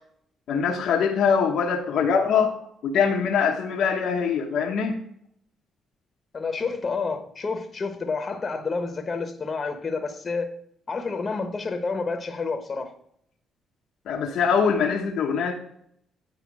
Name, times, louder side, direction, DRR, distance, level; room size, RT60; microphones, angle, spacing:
voice 1, 0.5-2.5 2.8-5.0 14.1-15.5, left 6 dB, 75° left, -1 dB, 1.1 m, -23 dB
voice 2, 6.3-10.5 10.9-12.9, left 4 dB, 35° left, 5 dB, 1.2 m, -29 dB
9.5 x 4.9 x 4.8 m, 0.69 s
cardioid pair, 90°, 0 cm